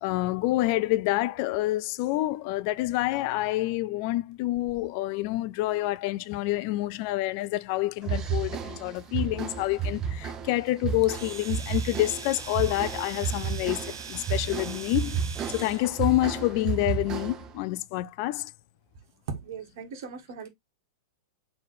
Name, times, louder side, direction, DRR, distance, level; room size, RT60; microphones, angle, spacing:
voice 1, 0.0-13.8 14.1-15.2 15.5-18.5, left 17 dB, 50° left, 0.4 m, -28 dB
sound 1, 8.0-17.6, right 6 dB, 30° right, 0.7 m, -32 dB
Domestic sounds home sounds, 11.0-15.9, right 6 dB, 80° right, 0.7 m, -41 dB
voice 2, 19.3-20.5, right 5 dB, 60° right, 1.5 m, -38 dB
4.1 x 3.4 x 3.4 m
hypercardioid pair, 100°, 2 cm